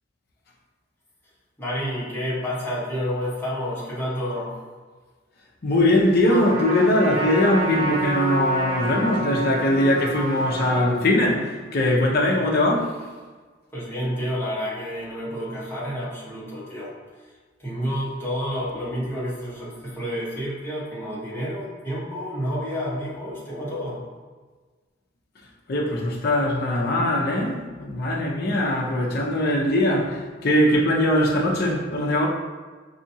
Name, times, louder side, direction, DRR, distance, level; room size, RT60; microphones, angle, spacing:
voice 1, 1.6-4.6 13.7-16.9 17.6-24.0, equal, 10° left, 1.2 m, -29 dB
voice 2, 5.6-11.5 11.7-12.9 25.7-30.1 30.4-32.3, left 1 dB, 55° left, 0.6 m, -21 dB
Trumpet, 6.3-10.9, right 2 dB, 80° right, 1.1 m, -28 dB
4.9 x 2.7 x 2.8 m
head